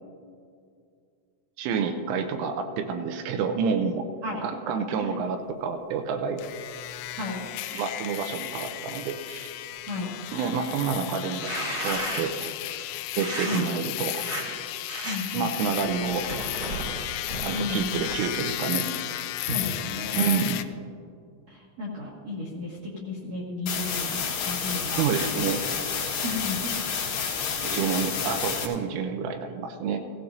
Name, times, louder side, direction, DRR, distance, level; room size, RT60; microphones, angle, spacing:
voice 1, 1.6-4.1 4.4-6.4 7.7-9.5 10.3-11.5 11.8-12.5 13.2-14.3 15.3-16.3 17.4-18.9 20.1-20.6 24.9-25.6 27.6-30.0, right 6 dB, 85° right, 5 dB, 3.1 m, -28 dB
sound 1, 6.4-20.6, left 14 dB, 85° left, 2.9 m, -34 dB
voice 2, 9.9-10.2 13.4-13.7 15.0-15.6 17.5-18.0 19.4-20.5 21.5-25.0 26.2-26.7 27.6-28.0 28.2-28.3, left 2 dB, 65° right, -4 dB, 1.7 m, -34 dB
sound 2, 11.2-12.5 13.1-13.6 14.1-14.4 14.9-15.2 15.8-18.4, right 1 dB, 45° right, 1.2 m, -34 dB
sound 3, 23.7-28.7, left 6 dB, 65° left, 2.9 m, -29 dB
16.5 x 16.0 x 2.6 m, 2.3 s
omnidirectional pair, 5.9 m